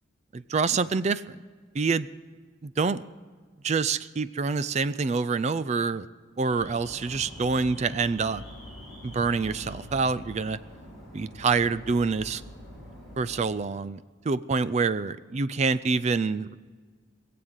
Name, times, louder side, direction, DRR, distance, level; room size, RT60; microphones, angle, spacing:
voice 1, 0.3-1.4 1.7-2.1 2.6-3.0 3.6-6.1 6.4-8.4 9.0-10.6 11.1-12.4 13.2-14.0 14.2-16.5, right 4 dB, 35° right, 16 dB, 0.4 m, -26 dB
Alarm, 6.5-13.4, equal, ahead, 6.3 m, -44 dB
21.0 x 7.7 x 8.0 m, 1.5 s
head